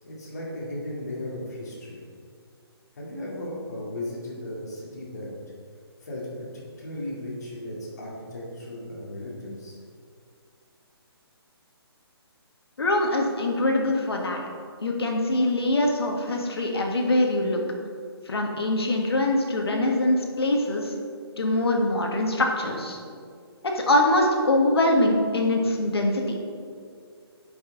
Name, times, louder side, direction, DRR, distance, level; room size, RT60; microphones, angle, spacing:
voice 1, 0.0-2.0 3.0-5.3 6.0-6.3 6.5-9.8, left 1 dB, 40° left, -4 dB, 2.1 m, -36 dB
voice 2, 12.8-14.4 14.8-17.6 18.3-20.9 21.4-23.0 23.6-26.3, left 1 dB, 70° left, 1 dB, 1.6 m, -23 dB
9.6 x 5.6 x 3.9 m, 2.2 s
hypercardioid pair, 180°, 14 cm